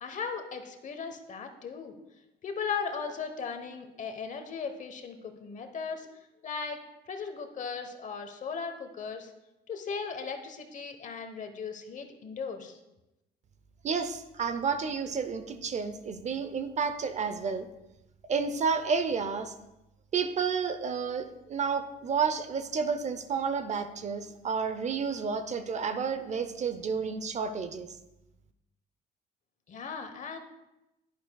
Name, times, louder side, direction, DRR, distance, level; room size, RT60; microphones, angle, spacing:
voice 1, 0.0-1.9 2.4-6.1 6.4-6.8 7.1-9.3 9.7-12.8 29.7-30.4, left 5 dB, 45° left, 6 dB, 1.0 m, -37 dB
voice 2, 13.8-17.7 18.3-19.5 20.1-27.9, right 5 dB, 40° right, 9 dB, 0.6 m, -31 dB
10.5 x 10.0 x 2.3 m, 0.94 s
cardioid pair, 125°, 18 cm